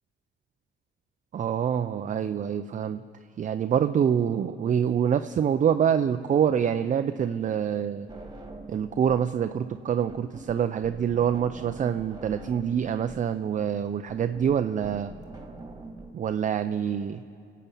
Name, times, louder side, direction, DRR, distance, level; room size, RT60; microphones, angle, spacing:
voice 1, 1.3-3.0 3.4-8.1 8.7-15.1 16.1-17.2, right 8 dB, 40° right, 9 dB, 0.4 m, -26 dB
sound 1, 8.1-9.3 9.6-16.1, right 2 dB, 20° right, 1.9 m, -44 dB
25.0 x 8.5 x 5.4 m, 2.5 s
cardioid pair, 90°, 20 cm